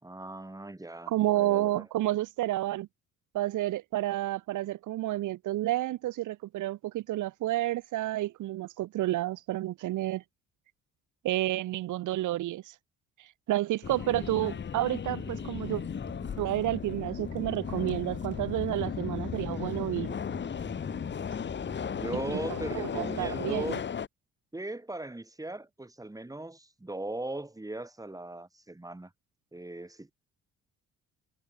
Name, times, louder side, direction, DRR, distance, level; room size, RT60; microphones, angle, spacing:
voice 1, 0.0-1.9 21.9-23.8 24.5-29.1 29.5-30.1, right 2 dB, 10° right, 4.7 m, -39 dB
voice 2, 1.1-2.9 3.3-10.2 11.2-12.7 13.2-15.8 16.4-20.1 22.3-22.4 22.7-23.8, right 15 dB, 80° right, 1.2 m, -30 dB
Subway metro underground, 13.8-24.1, left 7 dB, 35° left, 1.0 m, -36 dB
sound 1, 15.1-23.5, right 6 dB, 45° right, 8.0 m, -50 dB
cardioid pair, 90°, 30 cm